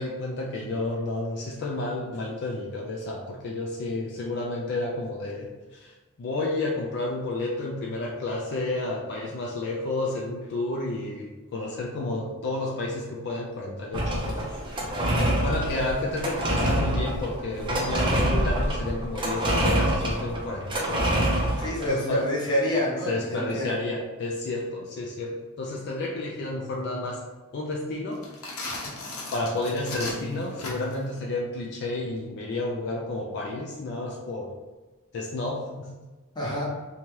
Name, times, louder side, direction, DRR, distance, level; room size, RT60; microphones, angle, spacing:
voice 1, 0.0-21.2 21.9-22.3 23.1-27.2 27.5-28.2 29.3-34.5 35.1-35.9, left 2 dB, 55° left, -2 dB, 0.4 m, -31 dB
sound 1, 13.9-21.9, right 1 dB, 20° right, 0.5 m, -26 dB
voice 2, 21.6-23.7 36.4-36.6, left 1 dB, 20° left, -6 dB, 0.8 m, -27 dB
sound 2, 28.1-31.1, left 2 dB, 80° left, 0.8 m, -36 dB
2.7 x 2.2 x 3.1 m, 1.2 s
head